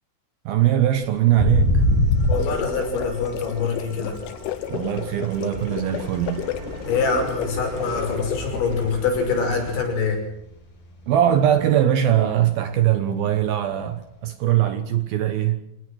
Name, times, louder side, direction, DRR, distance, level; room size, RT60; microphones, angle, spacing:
voice 1, 0.5-1.8 4.7-6.5 11.1-15.7, right 11 dB, 70° right, 2.5 m, -21 dB
sound 1, 0.9-9.8, right 2 dB, 85° right, 8.3 m, -38 dB
sound 2, 1.4-4.7 5.0-7.3 7.6-7.9 8.2-10.2 10.5-10.6 10.9-11.3 11.6-11.7 13.9-14.0, left 1 dB, 45° left, 9.2 m, -23 dB
sound 3, 2.1-8.9, left 11 dB, 90° left, 3.6 m, -33 dB
voice 2, 2.3-4.2 6.9-10.2, left 5 dB, 70° left, 7.9 m, -24 dB
25.5 x 19.0 x 6.4 m
omnidirectional pair, 5.4 m